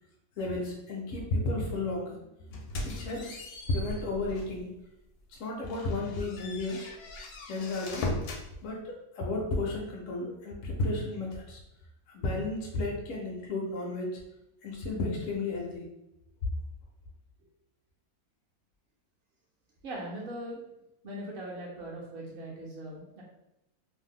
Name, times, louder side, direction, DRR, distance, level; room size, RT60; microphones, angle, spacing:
voice 1, 0.4-2.2 2.5-3.4 3.7-4.7 5.4-6.8 7.5-8.1 8.6-11.6 12.1-14.2 14.6-15.9, left 2 dB, 65° left, -1 dB, 0.8 m, -33 dB
sound 1, 2.5-4.6 5.1-5.2 5.6-8.5, left 2 dB, 85° left, 1.1 m, -38 dB
voice 2, 19.8-20.6 21.0-23.2, right 1 dB, 60° right, -4 dB, 0.6 m, -40 dB
2.7 x 2.0 x 3.5 m, 0.88 s
omnidirectional pair, 1.6 m